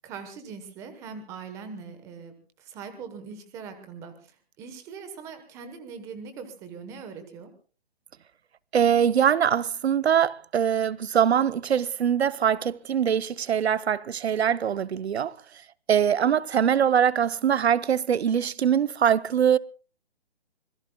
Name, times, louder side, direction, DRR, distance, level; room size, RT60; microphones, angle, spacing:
voice 1, 0.0-4.3 4.6-7.5, right 5 dB, 10° right, 1.1 m, -41 dB
voice 2, 8.7-15.3 15.9-19.6, right 8 dB, 85° right, 0.7 m, -23 dB
25.5 x 20.5 x 2.2 m
hypercardioid pair, 165°, 31 cm